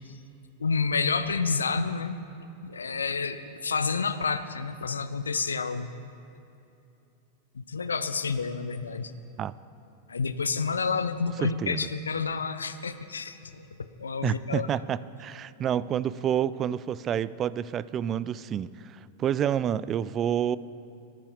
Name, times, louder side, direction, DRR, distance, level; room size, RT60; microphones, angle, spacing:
voice 1, 0.6-2.1 2.6-5.9 7.5-9.1 10.1-14.7, left 5 dB, 75° left, 12 dB, 0.5 m, -29 dB
voice 2, 11.4-11.8 14.2-20.6, right 9 dB, 30° right, 18 dB, 0.3 m, -29 dB
14.5 x 12.5 x 5.2 m, 2.8 s
figure-of-eight pair, 90°, 0 cm